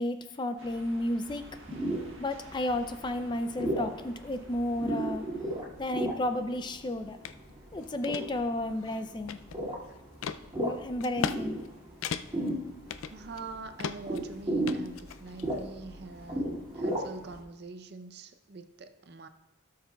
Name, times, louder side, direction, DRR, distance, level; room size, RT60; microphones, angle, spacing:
voice 1, 0.0-1.5 2.2-5.3 5.8-7.2 7.7-9.4 10.6-11.6, left 1 dB, 20° left, 8 dB, 0.4 m, -32 dB
sound 1, 0.6-5.6, right 2 dB, 70° right, 1.5 m, -53 dB
sound 2, 1.3-17.4, right 1 dB, 20° right, 2.2 m, -36 dB
sound 3, 7.2-7.4 7.8-8.2 8.8-9.7 10.2-10.4 11.0-11.4 11.7-11.8 12.0-12.5 12.9-13.5 13.8-14.2 14.7-15.5, left 7 dB, 85° left, 0.4 m, -36 dB
voice 2, 13.0-19.3, right 3 dB, 50° right, 8 dB, 0.6 m, -44 dB
16.5 x 6.6 x 2.3 m, 0.98 s
head